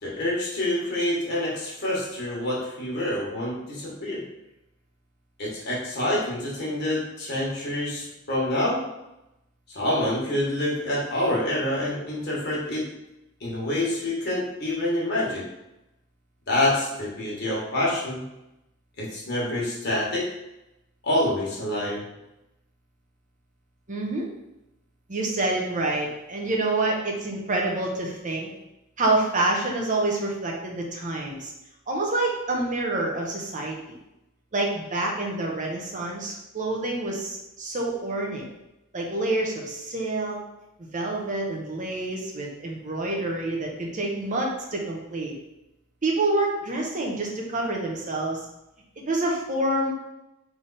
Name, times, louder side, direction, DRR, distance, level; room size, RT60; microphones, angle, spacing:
voice 1, 0.0-4.2 5.4-8.9 9.7-12.9 13.4-15.5 16.5-18.3 19.0-20.3 21.0-22.1, left 1 dB, 55° left, -4 dB, 1.4 m, -27 dB
voice 2, 23.9-24.3 25.1-28.5 29.0-31.5 31.9-34.0 34.5-38.5 38.9-40.4 40.8-45.3 46.0-48.4 49.0-49.9, right 2 dB, 40° right, -1 dB, 0.9 m, -27 dB
3.5 x 3.3 x 4.1 m, 0.91 s
head